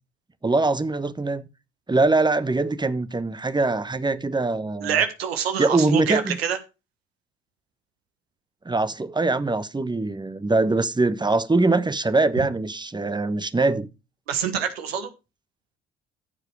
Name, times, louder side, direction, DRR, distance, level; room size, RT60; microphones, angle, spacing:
voice 1, 0.4-1.4 1.9-5.0 5.6-6.4 8.6-13.9, right 3 dB, 15° right, 1.2 m, -22 dB
voice 2, 4.8-6.6 14.3-15.1, right 8 dB, 85° right, 1.5 m, -25 dB
14.5 x 4.9 x 4.8 m
hypercardioid pair, 50°, 30 cm